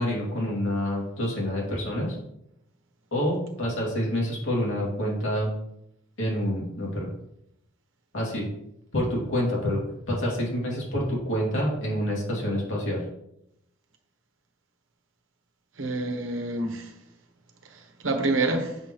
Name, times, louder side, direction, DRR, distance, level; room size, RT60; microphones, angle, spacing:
voice 1, 0.0-2.2 3.1-5.5 6.2-7.1 8.1-8.4 8.9-13.0, equal, 75° left, -3 dB, 2.7 m, -27 dB
voice 2, 15.8-16.9 17.7-18.8, right 2 dB, 80° right, 4 dB, 1.2 m, -27 dB
7.4 x 6.2 x 3.1 m, 0.81 s
head